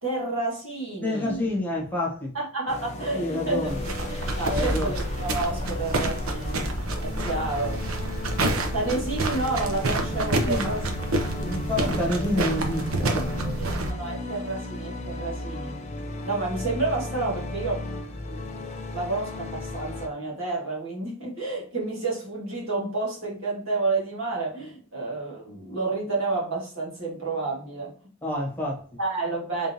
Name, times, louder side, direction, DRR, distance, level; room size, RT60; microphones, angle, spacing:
voice 1, 0.0-1.5 2.3-3.8 4.1-6.7 7.0-7.8 8.7-10.8 11.3-12.0 13.6-15.8 16.2-17.8 18.3-18.4 18.9-27.9 29.0-29.7, right 3 dB, 65° right, -4 dB, 1.8 m, -30 dB
voice 2, 1.0-2.3 3.1-3.8 4.4-4.9 10.5-10.8 11.4-13.7 28.2-28.8, left 1 dB, 10° left, -4 dB, 1.3 m, -28 dB
sound 1, 2.7-20.1, left 2 dB, 35° left, 0.6 m, -35 dB
sound 2, 3.7-13.9, right 2 dB, 85° right, 0.8 m, -28 dB
3.7 x 3.6 x 2.7 m, 0.43 s
head